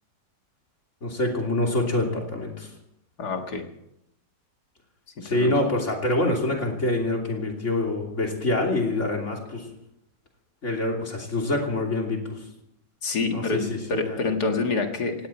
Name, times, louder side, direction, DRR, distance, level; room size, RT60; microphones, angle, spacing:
voice 1, 1.0-2.7 5.2-9.7 10.6-12.4 13.3-14.3, left 2 dB, 45° left, 1 dB, 3.3 m, -26 dB
voice 2, 3.2-3.6 5.2-5.5 13.0-15.3, left 3 dB, 70° left, 4 dB, 2.4 m, -27 dB
17.5 x 17.5 x 4.4 m, 0.80 s
omnidirectional pair, 1.8 m